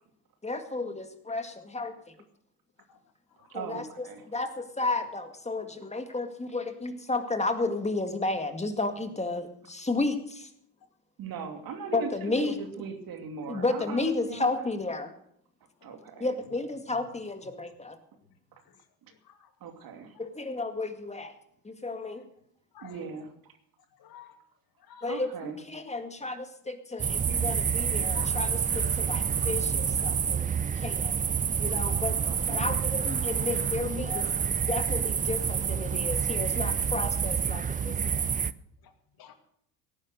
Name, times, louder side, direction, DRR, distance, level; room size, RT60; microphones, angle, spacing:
voice 1, 0.4-1.9 3.5-10.5 11.9-12.6 13.5-15.1 16.2-18.0 20.2-21.3 21.6-22.3 25.0-30.5 30.8-31.2 31.6-32.2 32.5-34.3 34.7-38.2, left 3 dB, 15° left, 7 dB, 2.1 m, -32 dB
voice 2, 3.5-4.3 11.2-12.1 12.4-14.6 15.8-16.3 19.0-19.1 19.6-20.2 22.8-23.5 25.1-25.6 32.3-32.7, right 5 dB, 50° right, 6 dB, 2.7 m, -39 dB
voice 3, 15.8-16.3 18.6-18.8 19.2-19.5 22.7-23.1 23.9-24.4 24.8-25.3 28.1-28.4 29.9-30.0 31.5-32.0 32.3-32.4 34.0-34.2 36.1-36.2 38.8-39.3, left 6 dB, 50° left, 6 dB, 2.5 m, -49 dB
sound 1, 27.0-38.5, right 7 dB, 20° right, 0.5 m, -28 dB
17.5 x 9.6 x 6.6 m, 0.71 s
hypercardioid pair, 75°, 45 cm